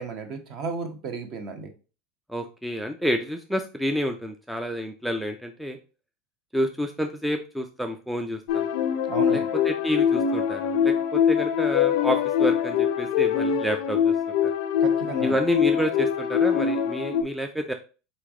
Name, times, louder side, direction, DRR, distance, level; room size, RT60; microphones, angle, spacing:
voice 1, 0.0-1.7 9.1-9.5 14.8-15.4, right 5 dB, 40° right, 6 dB, 1.0 m, -33 dB
voice 2, 2.3-5.8 6.5-8.7 9.3-14.1 14.4-14.5 15.2-17.7, equal, ahead, 5 dB, 0.4 m, -29 dB
sound 1, 8.5-17.2, left 8 dB, 65° left, 0.5 m, -23 dB
4.1 x 3.3 x 3.5 m, 0.34 s
supercardioid pair, 145°, 0 cm